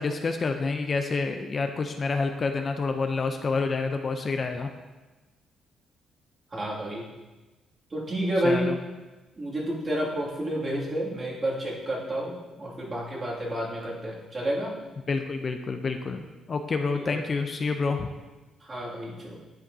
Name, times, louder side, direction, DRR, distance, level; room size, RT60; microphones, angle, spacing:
voice 1, 0.0-4.7 8.4-8.7 15.1-18.1, left 4 dB, 40° left, 6 dB, 0.5 m, -28 dB
voice 2, 6.5-7.1 7.9-8.8 9.4-14.7 16.9-17.2 18.6-19.4, right 1 dB, 35° right, -5 dB, 2.3 m, -30 dB
10.5 x 7.0 x 2.7 m, 1.2 s
cardioid pair, 90°, 0 cm